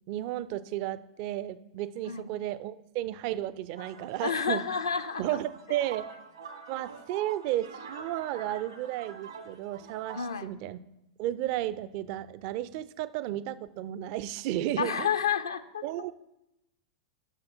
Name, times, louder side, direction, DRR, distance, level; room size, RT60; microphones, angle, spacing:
voice 1, 0.1-4.6 5.2-6.1 6.7-10.8 11.2-15.1 15.8-16.2, right 13 dB, 40° right, 16 dB, 0.4 m, -33 dB
sound 1, 3.8-10.3, right 5 dB, 70° right, 1.1 m, -46 dB
voice 2, 4.2-5.4 7.1-7.2 10.1-10.5 14.8-15.8, left 7 dB, 70° left, 10 dB, 0.5 m, -30 dB
11.5 x 6.5 x 4.4 m, 0.90 s
figure-of-eight pair, 95°, 2 cm